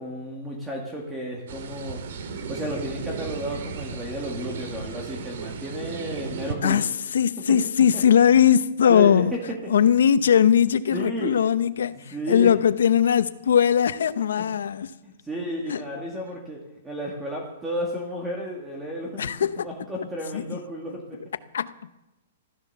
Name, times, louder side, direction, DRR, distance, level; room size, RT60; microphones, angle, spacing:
voice 1, 0.0-2.0 2.3-6.8 8.9-9.2 9.8-9.9 10.9-11.3 11.9-12.5 14.4-14.5 15.0-21.2, equal, 5° right, 2.1 m, -33 dB
sound 1, 1.5-6.5, right 5 dB, 60° right, 2.1 m, -35 dB
voice 2, 6.6-9.3 9.7-14.9 15.7-15.8 19.2-19.7 20.3-20.6 21.5-21.7, left 8 dB, 80° left, 0.9 m, -20 dB
15.0 x 13.0 x 6.9 m
hypercardioid pair, 170°, 0 cm